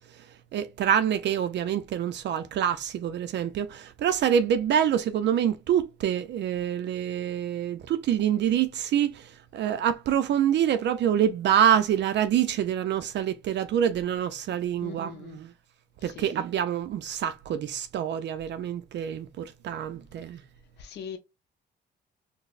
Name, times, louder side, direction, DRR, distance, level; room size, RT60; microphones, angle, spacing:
voice 1, 0.5-15.5 16.0-20.4, right 9 dB, 65° right, 0.4 m, -26 dB
voice 2, 14.8-15.4 16.0-16.3 20.8-21.2, left 7 dB, 60° left, 0.5 m, -41 dB
3.8 x 2.0 x 2.3 m
cardioid pair, 90°, 20 cm